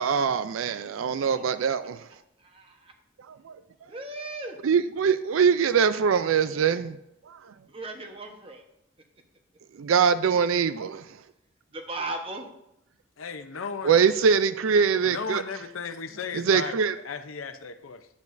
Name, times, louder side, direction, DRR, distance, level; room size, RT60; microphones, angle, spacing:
voice 1, 0.0-2.1 3.3-3.6 4.6-7.0 7.3-7.5 9.8-11.1 13.8-15.4 16.3-16.9, right 6 dB, 90° right, 13 dB, 0.4 m, -23 dB
voice 2, 3.9-4.6 7.7-8.6 11.7-12.5, right 2 dB, 30° right, 4 dB, 1.0 m, -36 dB
voice 3, 13.2-14.0 15.0-18.1, left 5 dB, 90° left, 9 dB, 0.7 m, -35 dB
10.5 x 8.3 x 2.6 m, 0.85 s
head